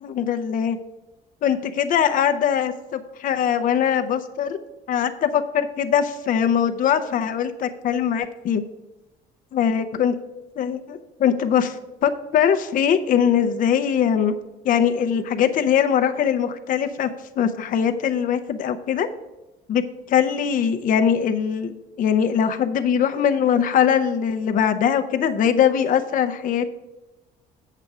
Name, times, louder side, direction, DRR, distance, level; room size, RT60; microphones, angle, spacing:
voice 1, 0.0-0.8 1.4-4.6 4.9-8.6 9.5-10.1 10.6-14.3 14.6-19.1 19.7-19.8 20.1-26.7, left 8 dB, 55° left, 8 dB, 0.6 m, -21 dB
8.3 x 6.6 x 4.7 m, 1.1 s
cardioid pair, 110°, 17 cm